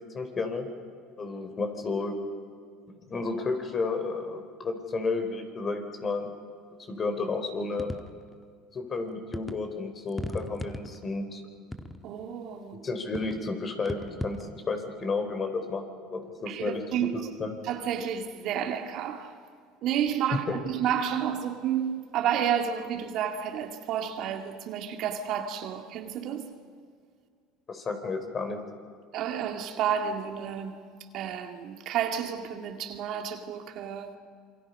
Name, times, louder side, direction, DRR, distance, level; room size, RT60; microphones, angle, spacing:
voice 1, 0.1-0.7 1.2-2.2 3.0-6.3 6.9-7.9 8.7-11.4 12.7-15.8 16.1-16.8 17.1-17.5 20.5-20.6 27.7-28.6, left 3 dB, 30° left, 4.2 m, -32 dB
sound 1, 7.8-8.3 9.3-9.6 10.1-11.2 11.7-12.2 13.1-13.5 13.9-14.5, left 1 dB, 10° left, 1.4 m, -37 dB
voice 2, 12.0-12.8 16.5-17.2 17.6-19.3 19.8-26.5 29.1-30.8 31.1-34.2, right 9 dB, 60° right, 2.2 m, -31 dB
28.0 x 23.5 x 5.5 m
supercardioid pair, 100°, 0 cm